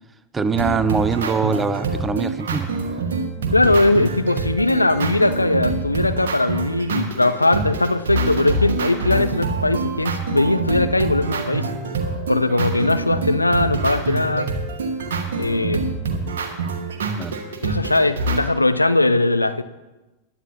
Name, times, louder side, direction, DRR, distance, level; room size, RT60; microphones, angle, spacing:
voice 1, 0.3-2.7 17.2-17.4, right 5 dB, 15° right, 14 dB, 0.6 m, -23 dB
sound 1, 0.5-18.4, right 3 dB, 60° right, 1.6 m, -26 dB
voice 2, 3.5-11.7 12.3-14.5 15.4-15.8 17.6-19.6, left 2 dB, 85° left, 11 dB, 0.6 m, -20 dB
20.0 x 11.0 x 2.8 m, 1.1 s
figure-of-eight pair, 90°, 0 cm